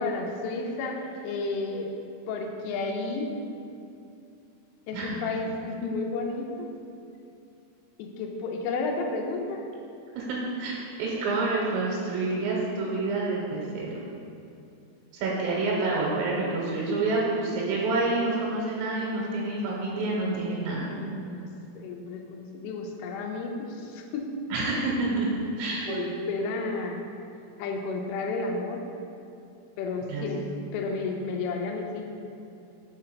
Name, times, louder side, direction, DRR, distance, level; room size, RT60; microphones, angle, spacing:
voice 1, 0.0-1.9 2.3-3.3 4.9-6.7 8.0-9.6 20.9-21.5 21.8-24.3 25.9-27.0 27.6-28.8 29.8-30.4 30.7-32.1, left 3 dB, 80° left, 2 dB, 2.7 m, -32 dB
voice 2, 4.9-5.2 10.1-14.0 15.1-20.9 24.5-25.3 25.6-26.0 30.1-30.3, right 3 dB, 85° right, -4 dB, 3.1 m, -28 dB
5.6 x 4.9 x 4.5 m, 2.6 s
omnidirectional pair, 5.2 m